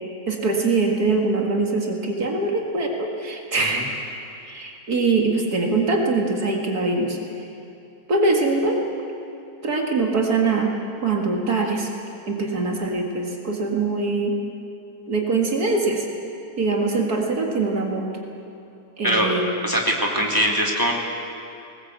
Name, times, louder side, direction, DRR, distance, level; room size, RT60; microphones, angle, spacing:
voice 1, 0.3-3.9 4.4-7.2 8.1-8.9 9.6-10.7 11.0-11.9 12.3-14.3 15.1-16.1 16.6-18.1 19.0-19.5, right 3 dB, 70° right, 1 dB, 2.5 m, -23 dB
voice 2, 19.0-19.3 19.6-20.9, equal, 10° right, -1 dB, 2.7 m, -22 dB
19.5 x 19.5 x 8.2 m, 2.7 s
omnidirectional pair, 1.7 m